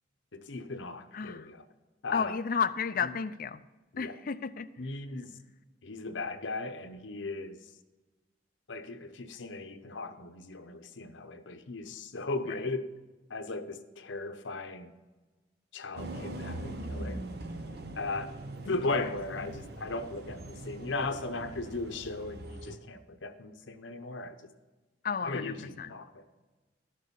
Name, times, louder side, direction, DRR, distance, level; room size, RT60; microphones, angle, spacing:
voice 1, 0.3-1.6 2.0-2.4 3.0-3.1 3.9-4.1 4.8-5.4 5.8-7.6 8.7-12.9 13.3-14.9 15.7-17.2 17.9-18.3 18.6-24.4 25.2-26.3, left 3 dB, 85° left, 8 dB, 0.8 m, -37 dB
voice 2, 1.1-1.5 2.1-3.6 4.0-4.7 5.2-5.3 12.4-12.7 18.7-19.7 25.0-25.9, left 6 dB, 50° left, 12 dB, 0.5 m, -33 dB
sound 1, 16.0-22.8, right 1 dB, 55° right, 0.9 m, -41 dB
12.5 x 6.7 x 5.4 m, 1.2 s
head